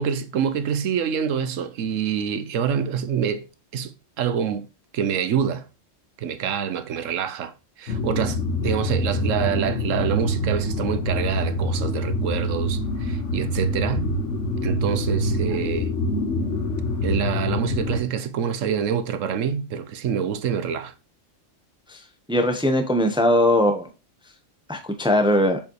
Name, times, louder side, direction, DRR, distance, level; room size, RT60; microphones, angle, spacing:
voice 1, 0.0-3.5 3.7-3.9 4.2-4.7 4.9-5.7 6.2-14.1 14.6-15.9 17.0-20.9, right 8 dB, 75° right, 1.1 m, -26 dB
sound 1, 7.9-18.0, left 1 dB, 70° left, 1.3 m, -25 dB
voice 2, 22.3-23.9 24.7-25.6, left 1 dB, 5° right, 0.9 m, -20 dB
7.1 x 5.1 x 3.0 m
omnidirectional pair, 1.3 m